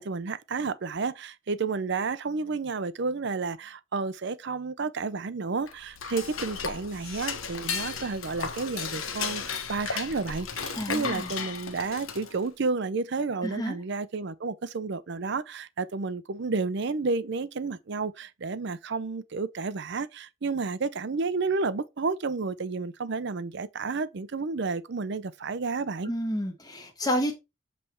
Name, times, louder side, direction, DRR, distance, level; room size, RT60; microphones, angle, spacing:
voice 1, 0.0-26.1, right 4 dB, 55° right, 0.6 m, -31 dB
Dishes pots and pans / Cutlery silverware, 5.6-12.5, left 6 dB, 80° left, 1.1 m, -35 dB
voice 2, 10.7-11.3 13.4-13.8 26.0-27.4, equal, 20° left, 1.5 m, -30 dB
7.6 x 3.4 x 4.4 m
head